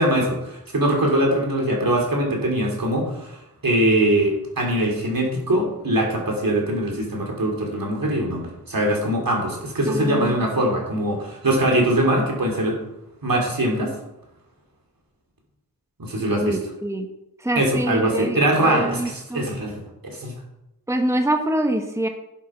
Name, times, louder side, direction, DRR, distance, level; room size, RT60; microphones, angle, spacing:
voice 1, 0.0-12.8 13.2-13.9 16.0-16.6 17.5-20.3, right 1 dB, 75° right, 0 dB, 3.3 m, -22 dB
voice 2, 9.9-10.4 16.3-17.1 17.4-19.5 20.9-22.1, right 1 dB, 10° right, 5 dB, 1.1 m, -25 dB
12.0 x 7.3 x 5.8 m, 0.89 s
wide cardioid pair, 80°, 35 cm